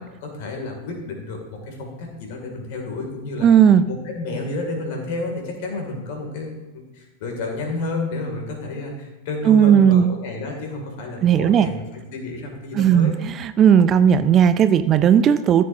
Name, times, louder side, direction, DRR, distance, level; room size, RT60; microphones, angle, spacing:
voice 1, 0.2-3.5 3.9-6.5 6.9-11.8 12.1-13.2, left 2 dB, 50° left, 2 dB, 2.4 m, -30 dB
voice 2, 3.4-3.8 9.5-10.1 11.2-11.7 12.7-13.1 13.4-15.6, right 8 dB, 30° right, 12 dB, 0.4 m, -15 dB
14.0 x 7.3 x 2.7 m, 1.2 s
figure-of-eight pair, 90°, 0 cm